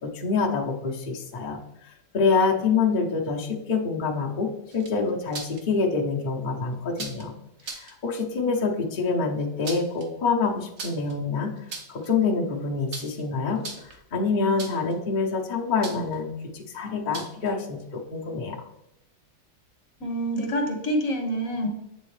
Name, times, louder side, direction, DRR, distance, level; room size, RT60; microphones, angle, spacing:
voice 1, 0.0-1.6 2.1-7.3 7.8-11.5 11.9-13.6 14.1-18.6, left 4 dB, 35° left, -3 dB, 0.8 m, -26 dB
sound 1, 4.7-5.6 6.9-7.3 7.6-7.9 9.4-10.1 10.8-11.1 11.6-12.1 12.9-13.2 13.6-14.0 14.6-14.9 15.8-16.2 17.1-17.5, right 4 dB, 55° right, 1.2 m, -38 dB
voice 2, 20.0-21.7, equal, 55° left, 2 dB, 1.3 m, -27 dB
8.0 x 3.7 x 3.2 m, 0.86 s
omnidirectional pair, 1.9 m